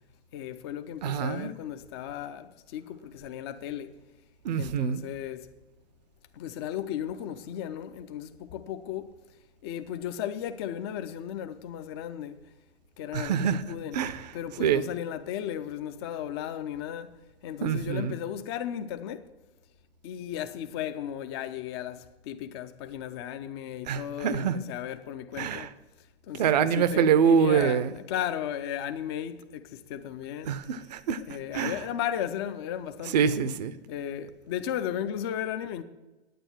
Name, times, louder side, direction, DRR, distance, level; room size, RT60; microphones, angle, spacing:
voice 1, 0.3-4.0 4.6-5.5 6.3-9.1 9.6-12.5 13.0-17.1 17.4-19.3 20.0-25.7 26.3-27.8 28.1-30.6 31.3-33.3 33.9-35.8, left 10 dB, 25° left, 0.5 m, -35 dB
voice 2, 1.0-1.5 4.4-5.0 13.1-13.6 13.9-14.3 14.6-14.8 17.6-18.2 23.9-24.6 25.4-25.7 26.3-27.9 30.5-31.2 31.5-31.8 33.1-33.7, right 7 dB, 40° right, 0.6 m, -25 dB
9.3 x 8.9 x 6.0 m
figure-of-eight pair, 115°, 33 cm